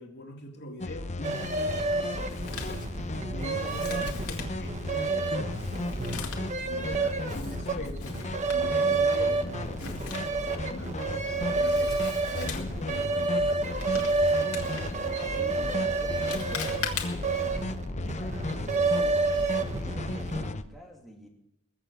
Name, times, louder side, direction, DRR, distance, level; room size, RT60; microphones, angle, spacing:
voice 1, 0.0-2.9 3.3-8.1 8.5-11.0 11.5-11.9 12.3-14.2 15.3-15.8, left 2 dB, 50° left, 2 dB, 2.2 m, -44 dB
sound 1, 0.8-20.6, left 2 dB, 35° left, 0.7 m, -36 dB
sound 2, 1.2-20.7, right 3 dB, 35° right, 1.3 m, -30 dB
Male speech man speaking, 2.1-17.4, left 6 dB, 75° left, 2.1 m, -42 dB
voice 2, 15.2-17.3 18.1-21.3, equal, ahead, -2 dB, 2.7 m, -47 dB
21.5 x 7.5 x 8.2 m, 0.83 s
head